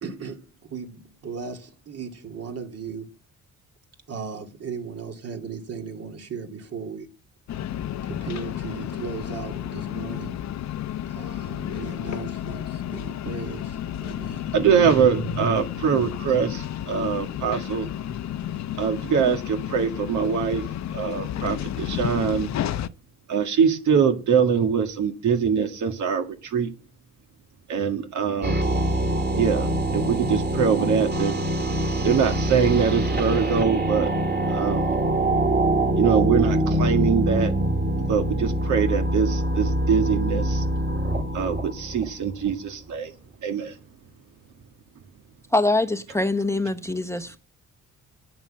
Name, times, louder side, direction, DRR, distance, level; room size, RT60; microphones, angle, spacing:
voice 1, 0.0-3.2 4.1-7.1 8.0-10.4 11.1-14.5, right 5 dB, 55° right, 2.7 m, -37 dB
sound 1, 7.5-22.9, left 11 dB, 65° left, 0.8 m, -32 dB
voice 2, 14.5-17.9 18.8-20.6 20.9-22.5 23.3-26.7 27.7-28.5 29.3-31.3 32.0-34.1 34.5-35.0 36.0-37.5 38.0-40.6 41.3-43.1 43.4-43.8, right 7 dB, 75° right, 2.0 m, -23 dB
sound 2, 28.4-42.5, right 1 dB, 35° right, 2.3 m, -24 dB
voice 3, 45.5-47.4, left 2 dB, 10° left, 0.9 m, -23 dB
9.0 x 9.0 x 7.8 m
cardioid pair, 90°, 30 cm